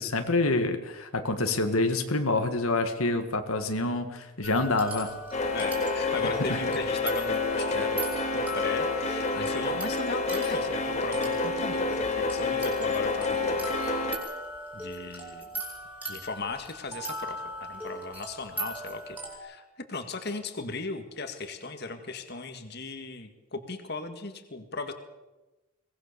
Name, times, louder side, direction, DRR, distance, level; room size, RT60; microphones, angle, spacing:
voice 1, 0.0-5.1 6.5-6.6, left 2 dB, 80° left, 6 dB, 1.9 m, -27 dB
sound 1, 4.4-19.4, right 1 dB, 5° right, 4.8 m, -39 dB
sound 2, 5.3-14.2, left 3 dB, 30° left, 2.1 m, -28 dB
voice 2, 5.5-8.0 8.3-13.7 14.7-15.4 16.1-24.9, left 3 dB, 50° left, 6 dB, 1.9 m, -37 dB
23.0 x 19.0 x 6.8 m, 1.1 s
head